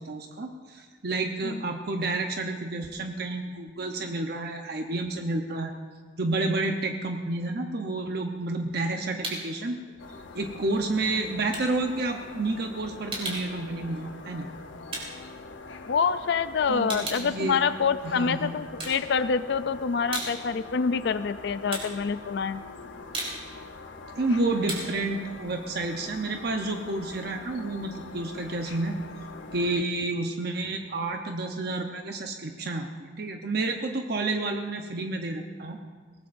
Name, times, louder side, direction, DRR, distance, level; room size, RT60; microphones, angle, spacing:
voice 1, 0.0-5.7 6.2-9.8 10.3-14.5 16.7-17.6 18.0-18.7 24.1-28.9 29.5-35.8, right 2 dB, 60° right, 3 dB, 0.9 m, -30 dB
sound 1, 8.4-9.6 9.9-16.2 16.5-18.3 18.6-19.5 19.9-26.6, right 2 dB, 30° right, 3.8 m, -38 dB
sound 2, 10.0-29.8, left 3 dB, 85° left, 0.9 m, -44 dB
voice 2, 15.9-22.6, left 5 dB, 65° left, 12 dB, 0.4 m, -26 dB
22.5 x 18.0 x 2.6 m, 1.5 s
head